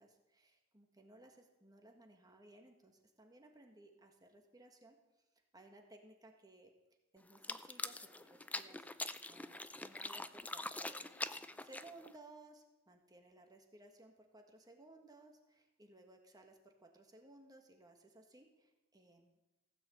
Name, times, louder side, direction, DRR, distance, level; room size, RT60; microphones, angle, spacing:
voice 1, 0.0-5.0 5.5-6.7 7.1-8.9 9.3-11.1 11.6-19.4, right 2 dB, 20° right, 3 dB, 1.6 m, -60 dB
sound 1, 7.3-12.2, left 2 dB, 10° left, 0.4 m, -44 dB
16.0 x 6.3 x 8.0 m, 1.0 s
head